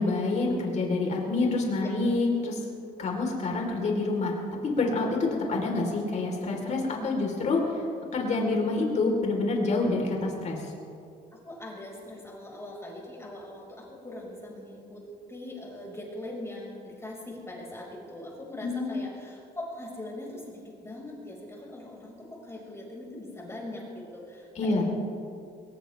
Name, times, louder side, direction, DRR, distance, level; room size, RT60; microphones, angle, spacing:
voice 1, 0.0-2.6 3.0-7.8 8.1-10.6 18.6-19.0 24.6-24.8, left 3 dB, 45° left, 0 dB, 4.0 m, -27 dB
voice 2, 11.3-15.0 15.3-24.8, left 1 dB, 15° left, -3 dB, 5.4 m, -41 dB
21.5 x 19.0 x 3.5 m, 2.5 s
cardioid pair, 110°, 17 cm